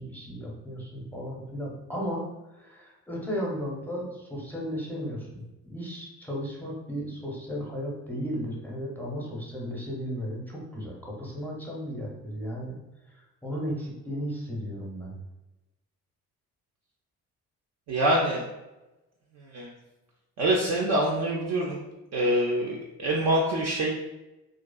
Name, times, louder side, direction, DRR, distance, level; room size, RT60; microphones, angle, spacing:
voice 1, 0.0-2.2 2.5-12.8 13.1-15.1, equal, 5° left, -3 dB, 0.6 m, -35 dB
voice 2, 17.9-18.4 19.4-19.7 20.4-21.8 22.1-23.9, right 1 dB, 40° right, -2 dB, 0.4 m, -25 dB
2.4 x 2.2 x 2.2 m, 1.0 s
figure-of-eight pair, 45°, 45 cm